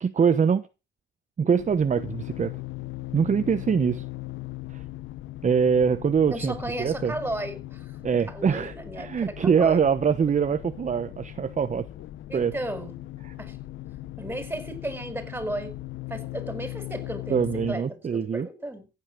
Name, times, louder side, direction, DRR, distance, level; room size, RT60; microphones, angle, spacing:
voice 1, 0.0-0.7 1.4-2.5 3.1-4.0 4.7-4.8 5.4-7.1 8.0-11.9 12.3-12.5 17.3-18.5, right 6 dB, 40° right, 1.0 m, -23 dB
sound 1, 1.6-17.8, left 16 dB, 80° left, 0.9 m, -39 dB
voice 2, 6.3-8.0 8.3-9.9 12.3-13.0 13.4-13.6 14.2-15.8 16.1-18.9, right 1 dB, 10° right, 4.9 m, -34 dB
15.0 x 9.6 x 6.2 m
cardioid pair, 90°, 20 cm